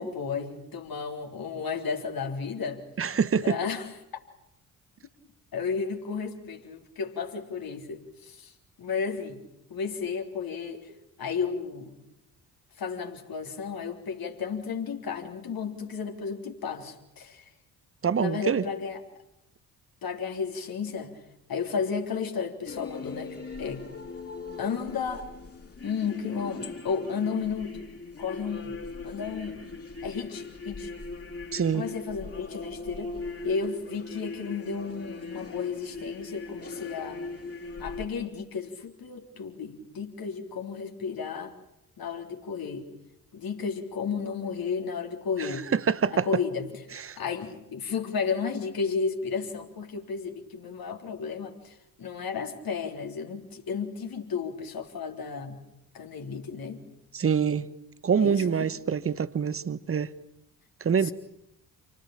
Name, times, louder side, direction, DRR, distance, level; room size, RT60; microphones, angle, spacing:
voice 1, 0.0-2.8 3.4-3.9 5.5-8.5 8.8-9.4 9.7-10.9 11.2-12.0 12.8-17.5 18.1-19.0 20.0-21.1 21.5-23.8 24.6-25.3 25.8-27.8 28.2-28.8 29.0-29.6 30.0-30.9 31.7-33.1 33.4-37.2 37.8-41.5 42.0-42.9 43.3-45.7 46.1-46.7 47.2-55.6 55.9-56.8 58.2-58.7 61.0-61.1, left 5 dB, 45° left, 3.7 m, -33 dB
voice 2, 3.0-3.6 18.0-18.6 31.5-31.8 45.4-46.3 46.9-47.2 57.1-57.7 58.0-60.1 60.8-61.1, right 7 dB, 25° right, 1.2 m, -25 dB
sound 1, 22.7-38.1, left 3 dB, 30° left, 4.2 m, -39 dB
28.5 x 20.0 x 8.9 m
figure-of-eight pair, 40°, 48 cm